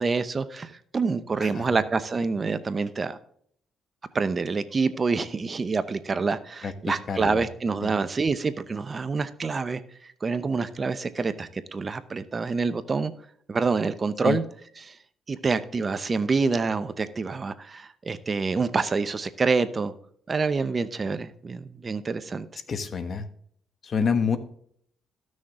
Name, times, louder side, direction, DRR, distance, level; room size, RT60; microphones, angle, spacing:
voice 1, 0.0-3.2 4.1-13.1 13.5-14.4 14.8-15.0 15.3-19.9 20.3-22.5, right 4 dB, 35° right, 12 dB, 0.7 m, -27 dB
voice 2, 6.6-7.4 7.8-7.9 14.2-14.4 22.7-23.3 23.8-24.4, left 6 dB, 50° left, 10 dB, 1.2 m, -27 dB
14.5 x 6.4 x 3.7 m, 0.63 s
cardioid pair, 90°, 0 cm